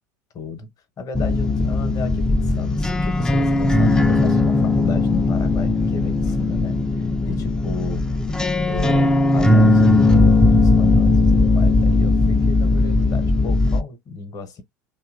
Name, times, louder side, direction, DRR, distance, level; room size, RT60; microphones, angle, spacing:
voice 1, 0.3-0.7 1.0-8.1 8.6-14.6, left 4 dB, 40° left, 0.8 m, -33 dB
sound 1, 1.1-13.8, left 2 dB, 5° left, 0.3 m, -18 dB
2.8 x 2.2 x 2.4 m
hypercardioid pair, 80°, 10 cm